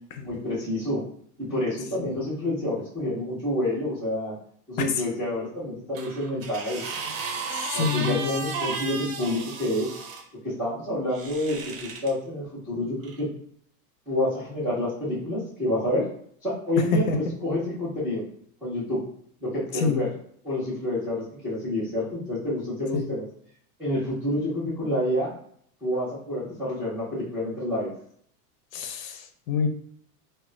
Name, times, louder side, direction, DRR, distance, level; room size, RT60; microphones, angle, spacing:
voice 1, 0.2-1.0 1.4-4.3 4.7-6.8 7.7-9.9 10.4-13.3 14.1-16.0 16.4-18.2 18.6-19.0 19.4-20.1 20.4-23.2 23.8-25.3 25.8-27.9, left 1 dB, 5° right, -14 dB, 0.3 m, -28 dB
sound 1, 5.9-10.2 11.1-12.1 13.0-13.2, right 4 dB, 60° right, 0.7 m, -34 dB
voice 2, 7.5-8.3 16.9-17.2 19.7-20.0 22.9-23.1 28.7-29.7, left 4 dB, 60° left, 6 dB, 0.6 m, -26 dB
2.3 x 2.1 x 3.6 m, 0.64 s
supercardioid pair, 150°, 47 cm